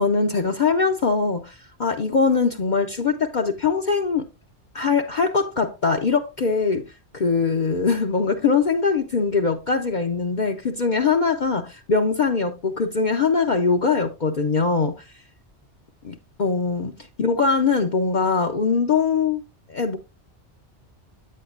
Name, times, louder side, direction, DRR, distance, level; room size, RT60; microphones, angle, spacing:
voice 1, 0.0-4.3 4.7-6.8 7.1-14.9 16.0-16.9 17.2-19.4 19.7-20.0, left 4 dB, 45° left, 0.8 m, -22 dB
8.7 x 8.5 x 2.5 m
omnidirectional pair, 1.2 m